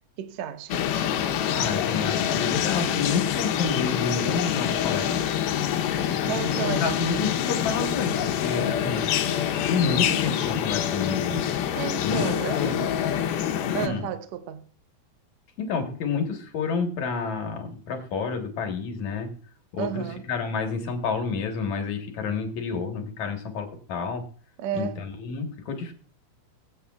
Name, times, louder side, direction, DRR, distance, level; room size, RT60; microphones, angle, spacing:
voice 1, 0.2-0.8 6.3-6.9 11.7-12.9 13.7-14.7 19.8-20.2 24.6-25.0, right 9 dB, 90° right, 1.5 m, -32 dB
sound 1, 0.7-13.9, left 10 dB, 80° left, 2.6 m, -26 dB
voice 2, 1.5-5.3 6.2-9.1 9.7-11.6 12.0-12.8 13.8-14.1 15.6-19.3 19.7-24.2 24.7-25.9, left 5 dB, 60° left, 2.3 m, -29 dB
23.0 x 8.4 x 2.3 m
omnidirectional pair, 4.4 m